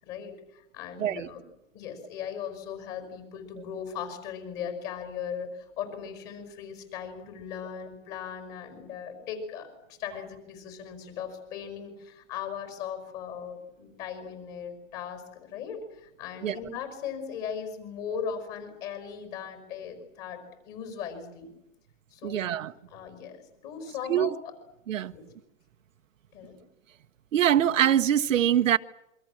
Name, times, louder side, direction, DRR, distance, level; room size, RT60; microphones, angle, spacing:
voice 1, 0.0-1.4 1.7-21.5 22.1-22.6 22.9-24.6 25.1-25.2 26.3-26.6, left 7 dB, 25° left, 5.7 m, -38 dB
voice 2, 1.0-1.3 7.7-7.9 16.4-16.6 22.2-22.7 24.1-24.3 24.9-25.1 27.3-28.8, right 10 dB, 70° right, 1.2 m, -24 dB
27.0 x 25.0 x 7.4 m
hypercardioid pair, 170°, 40 cm